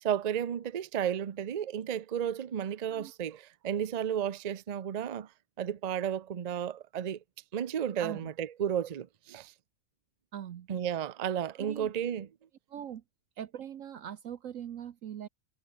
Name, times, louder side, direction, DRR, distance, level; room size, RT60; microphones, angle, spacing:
voice 1, 0.0-5.3 5.6-7.2 7.5-9.5 10.7-12.3, right 9 dB, 45° right, 0.5 m, -33 dB
voice 2, 8.0-8.3 10.3-10.7 11.6-11.9 12.7-13.0 13.4-15.3, right 9 dB, 65° right, 1.2 m, -41 dB
omnidirectional pair, 1.5 m